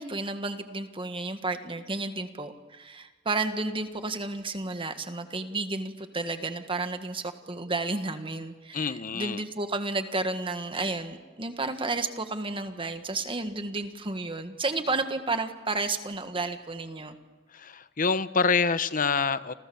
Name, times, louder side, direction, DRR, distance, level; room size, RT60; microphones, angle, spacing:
voice 1, 0.0-17.2, right 3 dB, 25° right, 8 dB, 1.7 m, -32 dB
voice 2, 8.7-9.4 17.5-19.5, left 5 dB, 45° left, 13 dB, 1.0 m, -26 dB
30.0 x 28.0 x 7.1 m, 1.2 s
head